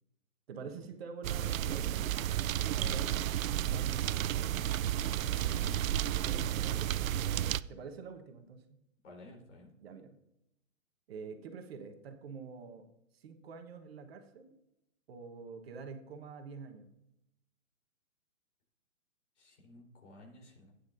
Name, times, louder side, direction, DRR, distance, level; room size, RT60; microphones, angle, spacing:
voice 1, 0.5-2.1 2.8-4.6 5.3-8.6 9.8-10.1 11.1-12.9 13.1-14.5 15.1-16.9, right 5 dB, 45° right, 5 dB, 1.3 m, -47 dB
sound 1, 1.2-7.6, right 11 dB, 70° right, 0.5 m, -32 dB
voice 2, 2.7-3.3 9.0-9.7 19.4-20.7, left 2 dB, 55° left, 0 dB, 4.0 m, -52 dB
15.5 x 9.5 x 2.7 m, 0.85 s
hypercardioid pair, 150°, 42 cm